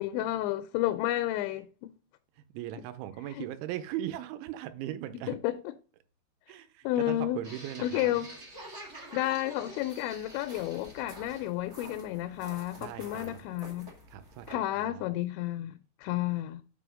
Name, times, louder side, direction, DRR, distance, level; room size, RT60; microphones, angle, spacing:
voice 1, 0.0-1.9 3.4-3.5 5.3-5.6 6.8-7.4 7.8-8.3 9.1-13.9 14.5-16.6, left 14 dB, 85° left, 2.8 m, -31 dB
voice 2, 2.4-5.4 6.5-8.2 12.8-13.4 14.1-15.2, right 12 dB, 85° right, 3.1 m, -39 dB
sound 1, 7.4-14.5, right 1 dB, 50° right, 0.8 m, -48 dB
6.0 x 5.6 x 6.2 m
omnidirectional pair, 5.4 m